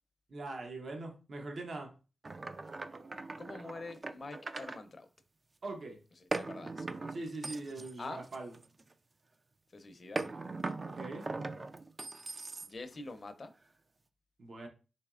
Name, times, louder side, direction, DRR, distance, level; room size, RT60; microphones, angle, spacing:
voice 1, 0.3-1.9 5.6-6.0 7.1-8.5 10.9-11.3 14.4-14.7, right 2 dB, 65° right, 0.8 m, -42 dB
sound 1, 2.2-4.8 6.3-8.9 10.2-13.0, right 3 dB, 40° right, 0.3 m, -40 dB
voice 2, 3.4-5.1 6.4-7.1 8.0-8.2 9.7-10.3 12.6-13.5, left 3 dB, 50° left, 0.5 m, -45 dB
4.2 x 2.9 x 2.4 m
cardioid pair, 50°, 0 cm